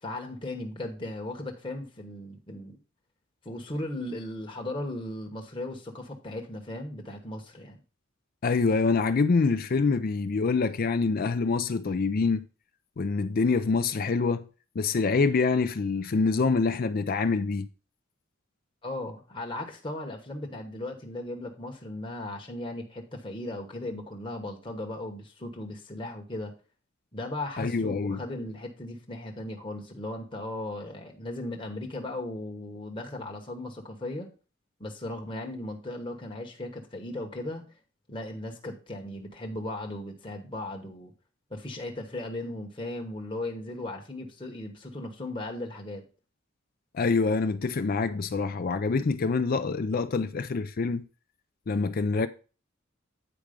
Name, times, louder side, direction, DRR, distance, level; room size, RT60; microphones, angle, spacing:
voice 1, 0.0-2.8 3.4-7.8 18.8-26.5 27.1-34.3 34.8-37.7 38.1-41.1 41.5-46.0, left 1 dB, 25° left, 1.1 m, -37 dB
voice 2, 8.4-12.4 13.0-14.4 14.8-17.7 27.6-28.2 46.9-51.0 51.7-52.3, left 4 dB, 45° left, 0.4 m, -25 dB
8.9 x 4.7 x 5.0 m
head